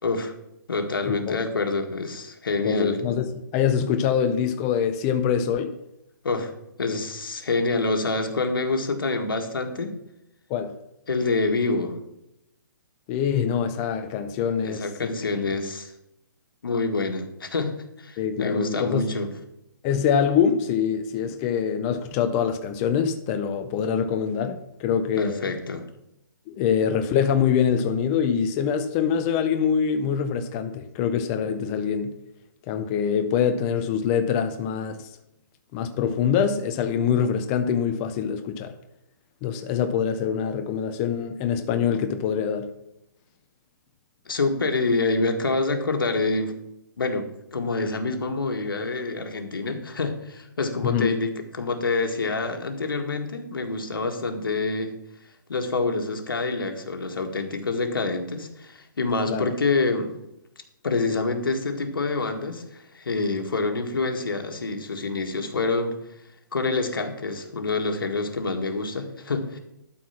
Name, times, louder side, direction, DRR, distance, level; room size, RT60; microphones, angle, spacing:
voice 1, 0.0-0.3 0.7-3.0 6.2-6.5 6.8-10.0 11.1-12.0 14.6-15.9 16.6-19.3 25.2-25.9 44.3-46.6 47.0-54.9 55.5-60.2 60.8-66.0 66.5-69.6, left 3 dB, 90° left, 1.8 m, -27 dB
voice 2, 1.1-1.4 2.6-5.7 10.5-10.7 13.1-15.1 15.4-15.5 18.2-19.1 19.8-25.5 26.5-32.2 32.7-35.1 35.7-38.7 39.4-42.7 50.8-51.1 59.3-59.5, left 7 dB, 20° left, 0.6 m, -24 dB
12.0 x 4.7 x 5.9 m
hypercardioid pair, 160°, 11 cm